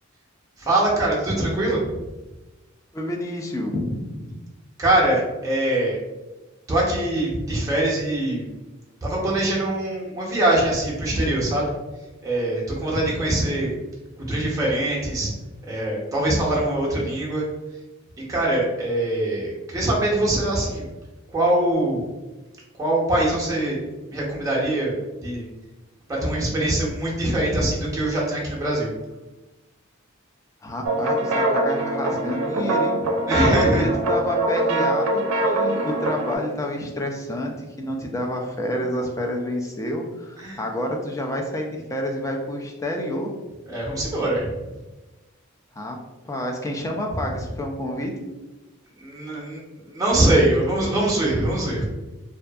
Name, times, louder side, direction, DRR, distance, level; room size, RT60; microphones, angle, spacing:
voice 1, 0.6-1.9 4.8-6.0 6.7-8.4 9.0-11.7 12.2-13.7 14.2-15.3 15.7-17.4 18.3-20.9 21.3-22.0 22.8-23.8 24.1-25.0 25.2-25.5 26.1-28.9 33.3-33.9 40.4-40.6 43.7-44.5 49.0-49.6 49.8-51.8, right 1 dB, 15° right, -5 dB, 0.6 m, -23 dB
voice 2, 2.9-4.4 30.6-33.1 33.4-43.3 45.8-46.0 46.3-48.3, left 1 dB, 15° left, 1 dB, 0.3 m, -29 dB
sound 1, 30.8-36.4, right 1 dB, 90° right, 0.4 m, -23 dB
2.6 x 2.3 x 2.2 m, 1.1 s
head